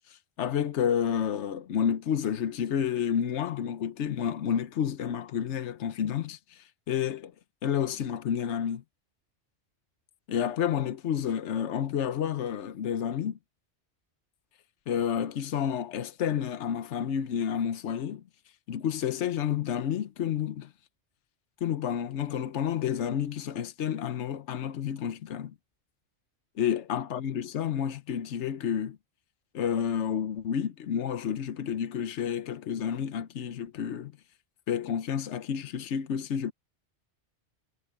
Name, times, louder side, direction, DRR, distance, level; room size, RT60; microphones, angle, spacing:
voice 1, 0.1-7.3 7.6-8.8 10.3-13.4 14.9-18.2 18.7-20.7 21.6-25.5 26.6-29.0 29.5-34.1 34.7-36.5, left 8 dB, 80° left, 1.1 m, -30 dB
omnidirectional pair, 1.2 m